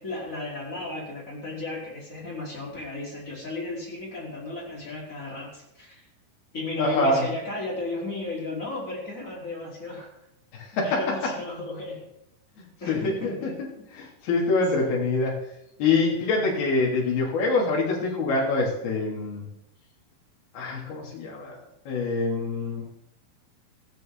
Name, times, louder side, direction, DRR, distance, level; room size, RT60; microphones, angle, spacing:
voice 1, 0.0-6.0 6.5-10.1 10.8-12.0 12.8-13.5 13.8-13.9 14.8-15.1 16.4-16.7, left 2 dB, 20° left, -4 dB, 4.6 m, -34 dB
voice 2, 6.8-7.2 10.8-11.0 12.6-13.5 13.9-15.3 15.8-19.4 20.5-21.6 21.9-22.8, left 3 dB, 70° left, -3 dB, 4.9 m, -25 dB
18.0 x 14.0 x 4.0 m, 0.86 s
omnidirectional pair, 4.6 m